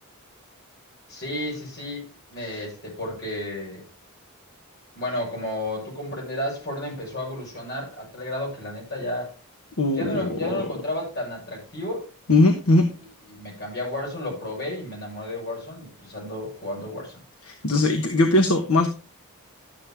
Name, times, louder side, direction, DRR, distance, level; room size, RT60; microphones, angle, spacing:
voice 1, 1.1-2.0 2.3-3.8 4.9-9.3 9.9-12.1 13.3-17.2, left 1 dB, 50° left, 6.5 m, -32 dB
voice 2, 9.8-10.4 12.3-12.9 17.5-18.9, left 2 dB, 70° left, 1.1 m, -20 dB
11.5 x 7.3 x 3.5 m
head